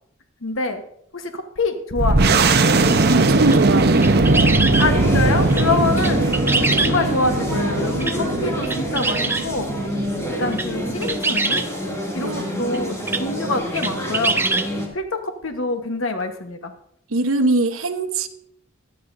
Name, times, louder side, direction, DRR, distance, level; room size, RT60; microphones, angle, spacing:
voice 1, 0.4-0.8 1.1-2.4 4.8-6.3 6.8-9.7 10.3-11.6 12.1-14.4 14.9-16.7, left 3 dB, 75° left, 6 dB, 1.2 m, -25 dB
sound 1, 2.0-11.2, right 2 dB, 50° right, 0.9 m, -19 dB
sound 2, 2.9-3.0 3.5-4.9 5.5-5.7 6.0-7.3 8.0-8.2 8.6-9.5 10.3-10.7 11.0-11.7 12.7-12.8 13.1-13.2 13.8-14.7, right 3 dB, 10° right, 0.5 m, -23 dB
voice 2, 3.1-4.2 5.6-5.8 12.2-12.6 17.1-18.3, right 2 dB, 85° right, 9 dB, 1.0 m, -22 dB
sound 3, 4.7-14.9, equal, 15° left, 2.6 m, -28 dB
16.5 x 12.0 x 2.6 m, 0.69 s
head